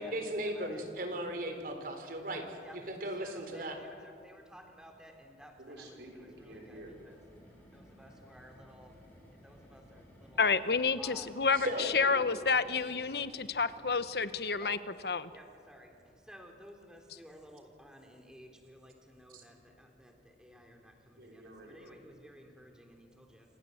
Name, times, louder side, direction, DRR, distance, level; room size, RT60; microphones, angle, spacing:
voice 1, 0.0-3.8 11.5-11.9 19.3-19.4, right 1 dB, 50° right, 6 dB, 4.0 m, -37 dB
voice 2, 3.2-5.5 6.7-6.8 7.7-8.9 9.4-10.0 10.3-10.4 11.0-11.3 14.6-14.8 15.3-15.9 16.3-20.1 20.4-21.4 21.7-23.4, equal, 5° right, 2 dB, 3.6 m, -54 dB
voice 3, 5.6-6.9 11.8-12.4 21.2-22.0, right 1 dB, 70° right, 1 dB, 5.5 m, -49 dB
sound 1, 5.7-14.5, equal, 10° left, 7.8 m, -58 dB
voice 4, 10.4-15.3, left 4 dB, 60° left, 12 dB, 1.1 m, -30 dB
28.5 x 26.0 x 8.0 m, 2.3 s
head